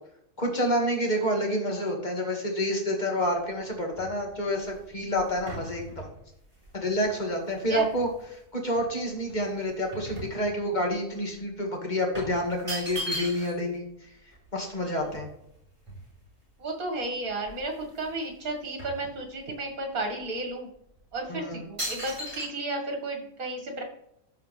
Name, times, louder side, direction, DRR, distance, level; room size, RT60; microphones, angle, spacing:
voice 1, 0.4-6.1 6.7-14.1 14.5-15.3 21.3-21.6, equal, 30° left, 1 dB, 2.1 m, -28 dB
sound 1, 3.2-8.3 8.8-10.9 11.2-11.4 12.1-13.7 14.0-14.1 14.3-16.5 17.0-17.1 17.4-18.2 18.4-19.7 20.2-20.4 21.0-21.3 21.8-22.5, equal, 20° right, 3.9 m, -39 dB
voice 2, 16.6-20.7 21.1-23.8, right 2 dB, 60° right, 2 dB, 2.4 m, -33 dB
13.0 x 4.9 x 3.4 m, 0.76 s
omnidirectional pair, 1.7 m